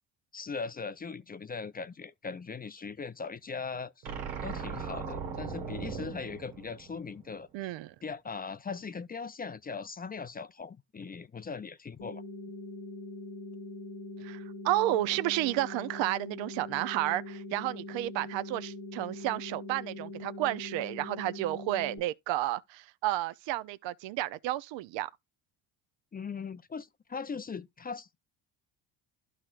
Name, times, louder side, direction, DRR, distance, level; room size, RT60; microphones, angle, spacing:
voice 1, 0.3-4.1 4.4-7.7 8.0-12.2 26.1-28.2, left 5 dB, 20° left, 0.4 m, -39 dB
sound 1, 4.0-7.4, right 6 dB, 90° right, 1.7 m, -39 dB
voice 2, 7.5-7.9 14.2-25.1, right 15 dB, 65° right, 0.6 m, -31 dB
sound 2, 12.0-22.0, left 2 dB, 80° left, 1.8 m, -42 dB
12.5 x 4.2 x 2.4 m
supercardioid pair, 65°, 49 cm